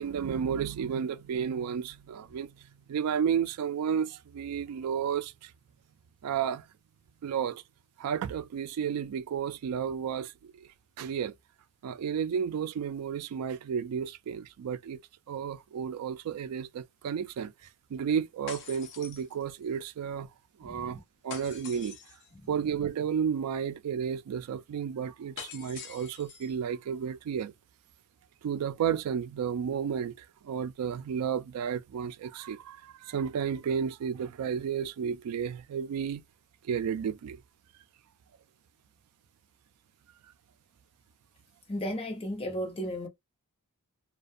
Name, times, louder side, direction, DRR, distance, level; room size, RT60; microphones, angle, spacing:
voice 1, 0.0-2.5 2.9-5.5 6.2-6.6 7.2-7.6 8.0-10.5 11.0-11.3 11.8-15.0 15.3-17.5 17.9-20.3 20.6-22.0 22.5-27.5 28.4-36.2 36.7-37.4, right 7 dB, 85° right, 0.3 m, -32 dB
sound 1, 18.5-19.8 21.3-22.3 25.4-26.5, left 6 dB, 55° left, 0.7 m, -45 dB
voice 2, 41.7-43.1, equal, 25° left, 0.8 m, -34 dB
2.4 x 2.1 x 2.5 m
head